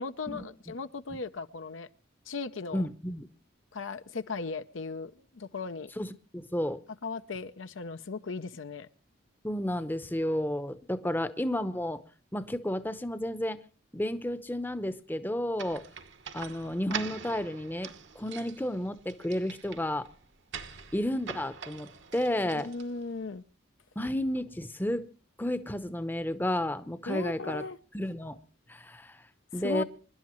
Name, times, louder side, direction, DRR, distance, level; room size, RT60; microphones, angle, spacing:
voice 1, 0.0-1.9 2.3-2.9 3.7-5.9 7.0-8.9 22.5-23.4 27.1-27.8 29.5-29.8, left 4 dB, 75° left, 0.7 m, -37 dB
voice 2, 2.7-3.3 6.0-6.8 9.4-12.0 12.3-13.6 13.9-15.9 16.3-20.1 20.9-22.7 24.0-25.1 25.4-27.6 27.9-28.4 28.7-29.2 29.5-29.8, left 1 dB, 10° left, 0.7 m, -32 dB
sound 1, 15.6-23.2, right 6 dB, 65° right, 1.2 m, -44 dB
26.0 x 11.5 x 3.1 m
head